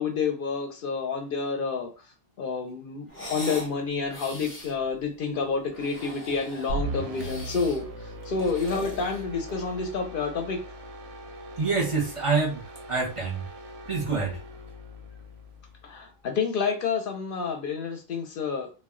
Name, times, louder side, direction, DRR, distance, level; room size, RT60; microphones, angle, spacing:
voice 1, 0.0-1.9 2.4-10.6 15.8-18.7, left 5 dB, 65° left, 4 dB, 0.7 m, -29 dB
sound 1, 3.1-3.7 4.1-4.8 5.6-6.8 7.1-7.8 8.2-9.8, equal, 15° left, 0.7 m, -40 dB
sound 2, 6.7-16.1, right 1 dB, 90° right, 0.8 m, -39 dB
voice 2, 11.6-12.6 12.9-13.4 13.9-14.4, right 4 dB, 35° right, -2 dB, 0.6 m, -26 dB
2.2 x 2.1 x 3.6 m, 0.33 s
omnidirectional pair, 1.0 m